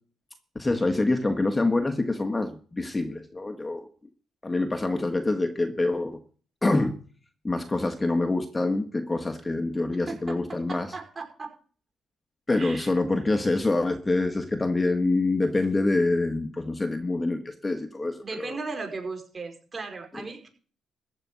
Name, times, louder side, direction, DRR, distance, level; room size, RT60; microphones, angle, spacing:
voice 1, 0.5-3.8 4.4-6.2 6.6-6.9 7.4-10.9 12.5-18.6 20.2-20.3, left 2 dB, 20° left, 6 dB, 1.6 m, -26 dB
voice 2, 10.1-11.5 12.5-12.9 18.2-20.5, right 3 dB, 30° right, 4 dB, 5.1 m, -37 dB
15.0 x 5.4 x 9.4 m, 0.42 s
cardioid pair, 90°, 0 cm